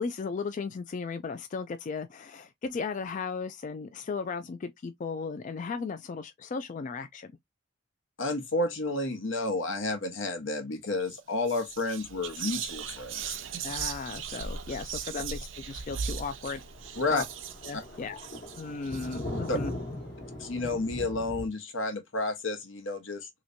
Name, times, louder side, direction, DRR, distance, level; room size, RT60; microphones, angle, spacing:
voice 1, 0.0-7.3 13.6-16.6 17.1-17.2 17.6-18.3 18.6-19.7, left 5 dB, 40° left, 0.3 m, -36 dB
voice 2, 8.2-13.4 13.6-13.7 17.0-17.2 19.5-19.6 20.4-23.3, left 2 dB, 85° left, 1.0 m, -31 dB
Whispering, 11.0-11.2 11.5-19.6, right 7 dB, 75° right, 0.6 m, -38 dB
Thunder, 14.5-14.7 15.1-15.2 15.5-15.6 15.9-16.0 16.3-21.5, left 1 dB, 60° left, 1.2 m, -39 dB
3.2 x 3.0 x 2.5 m
head